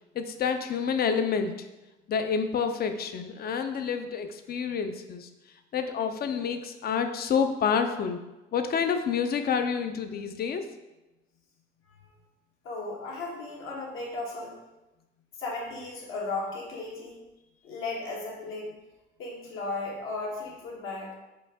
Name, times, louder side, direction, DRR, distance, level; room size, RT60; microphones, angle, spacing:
voice 1, 0.1-1.7 2.1-5.3 5.7-8.2 8.5-10.7, left 6 dB, 50° left, 8 dB, 0.5 m, -28 dB
voice 2, 12.6-14.6 15.4-17.2 17.6-18.8 19.2-21.1, left 3 dB, 75° left, -3 dB, 1.3 m, -35 dB
4.9 x 2.5 x 3.5 m, 1.0 s
cardioid pair, 90°, 21 cm